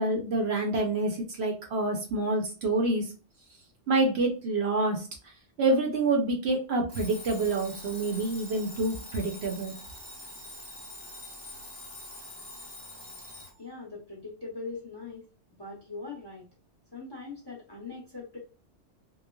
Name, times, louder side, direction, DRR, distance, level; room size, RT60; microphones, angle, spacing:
voice 1, 0.0-3.1 3.9-5.1 5.6-9.7, right 2 dB, 65° right, 1 dB, 0.8 m, -27 dB
Alarm, 6.9-13.6, left 1 dB, 15° right, 0.7 m, -44 dB
voice 2, 13.6-15.2 15.6-16.5 16.9-18.4, left 3 dB, 25° left, -3 dB, 0.7 m, -41 dB
3.1 x 2.0 x 2.2 m, 0.35 s
omnidirectional pair, 1.2 m